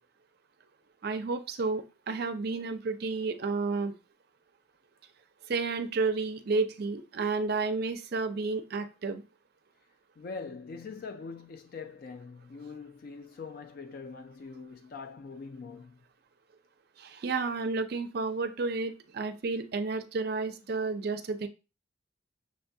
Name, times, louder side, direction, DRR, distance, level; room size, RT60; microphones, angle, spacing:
voice 1, 1.0-3.9 5.5-9.2 17.0-21.5, right 4 dB, 50° right, 0.4 m, -31 dB
voice 2, 10.2-16.0, left 4 dB, 45° left, 0.3 m, -43 dB
6.3 x 2.2 x 2.6 m
head